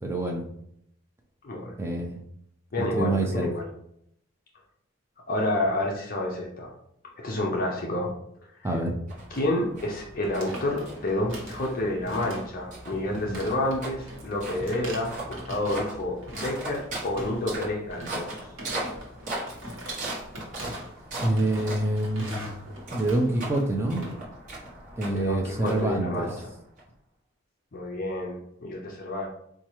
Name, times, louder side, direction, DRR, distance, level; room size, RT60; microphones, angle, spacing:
voice 1, 0.0-0.4 1.8-2.2 2.8-3.5 8.6-9.0 13.1-13.5 21.2-22.5 22.9-24.0 25.0-26.3, right 1 dB, 10° right, 2 dB, 0.4 m, -26 dB
voice 2, 1.4-1.8 2.7-3.6 5.3-6.7 7.2-8.1 8.5-8.7 9.3-18.5 25.1-26.3 27.7-29.3, left 1 dB, 40° left, -1 dB, 0.5 m, -29 dB
sound 1, 9.1-26.8, right 1 dB, 35° right, 0.9 m, -39 dB
sound 2, 9.3-9.6 9.8-10.0 10.2-11.7 12.1-12.6 12.9-15.9 16.2-17.5 17.9-24.1, equal, 60° right, 1.1 m, -42 dB
4.2 x 2.3 x 3.0 m, 0.73 s
head